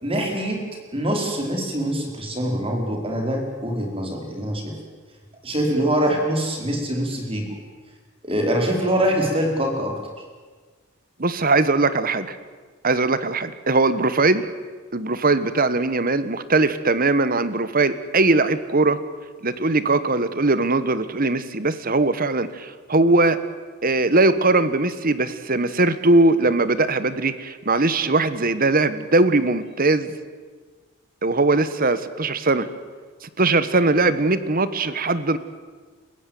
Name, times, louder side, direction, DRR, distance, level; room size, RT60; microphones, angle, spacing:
voice 1, 0.0-0.6 0.9-4.7 5.4-7.5 8.2-9.9, right 1 dB, 25° right, 2 dB, 4.8 m, -24 dB
voice 2, 11.2-12.4 12.8-14.4 14.9-19.0 19.4-23.4 23.8-30.1 31.2-32.7 33.2-35.4, right 2 dB, 40° right, 14 dB, 1.3 m, -20 dB
30.0 x 15.5 x 9.4 m, 1.5 s
head